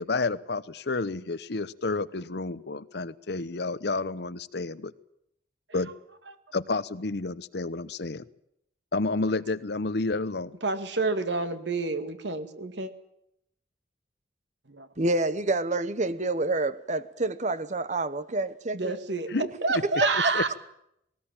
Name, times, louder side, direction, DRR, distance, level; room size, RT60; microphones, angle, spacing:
voice 1, 0.0-4.9 5.7-5.9 6.5-8.2 8.9-10.5 19.3-19.5 20.3-20.4, left 3 dB, 65° left, 16 dB, 0.9 m, -30 dB
voice 2, 10.6-12.9 14.7-14.9 18.7-20.5, right 3 dB, 85° right, 9 dB, 2.2 m, -28 dB
voice 3, 15.0-19.0 20.0-20.3, right 2 dB, 45° right, 14 dB, 1.2 m, -28 dB
20.0 x 18.5 x 8.9 m, 0.78 s
head